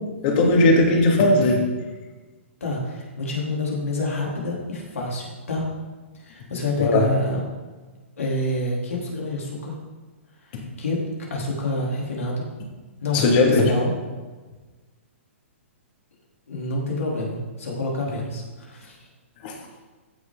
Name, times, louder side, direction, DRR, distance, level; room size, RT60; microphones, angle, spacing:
voice 1, 0.2-1.6 6.8-7.1 10.5-10.6 13.1-13.7 19.4-19.5, left 2 dB, 45° left, 1 dB, 2.4 m, -18 dB
voice 2, 2.6-5.6 6.1-7.4 8.2-9.8 10.4-11.0 11.3-12.5 13.0-13.9 16.5-19.1, left 2 dB, 85° left, -3 dB, 3.5 m, -28 dB
15.0 x 6.4 x 4.0 m, 1.3 s
hypercardioid pair, 135°, 7 cm